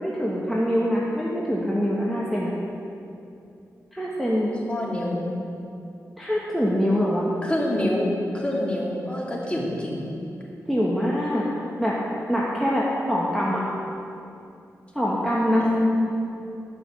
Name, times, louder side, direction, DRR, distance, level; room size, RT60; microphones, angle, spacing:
voice 1, 0.0-2.5 3.9-4.5 6.2-7.2 7.8-8.0 10.7-11.4 11.8-12.0 12.3-13.6 14.9-15.6, equal, ahead, -6 dB, 1.7 m, -24 dB
voice 2, 4.7-5.2 7.4-8.1 8.3-10.1 15.6-15.9, left 1 dB, 20° left, -4 dB, 2.8 m, -26 dB
12.5 x 6.4 x 7.4 m, 2.6 s
cardioid pair, 70°, 6 cm